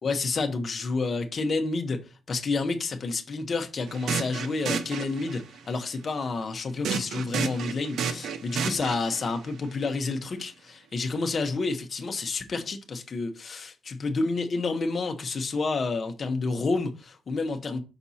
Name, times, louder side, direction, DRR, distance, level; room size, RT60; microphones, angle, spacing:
voice 1, 0.0-17.8, left 3 dB, 35° left, 1.0 m, -29 dB
sound 1, 3.9-5.6 6.8-9.3, right 6 dB, 85° right, 0.7 m, -31 dB
6.0 x 4.3 x 4.2 m
wide cardioid pair, 150°, 0 cm